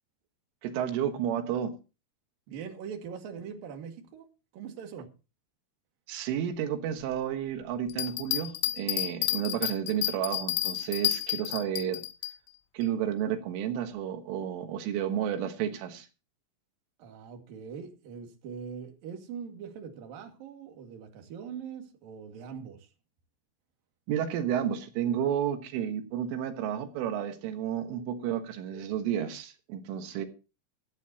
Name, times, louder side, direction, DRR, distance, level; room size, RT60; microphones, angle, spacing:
voice 1, 0.6-1.7 6.1-12.0 12.7-16.1 24.1-30.3, right 9 dB, 75° right, 3.9 m, -31 dB
voice 2, 2.5-4.3 4.5-5.1 17.0-22.9, right 7 dB, 55° right, 3.4 m, -42 dB
sound 1, 7.9-12.3, left 15 dB, 85° left, 3.8 m, -30 dB
16.5 x 14.0 x 2.9 m
omnidirectional pair, 5.8 m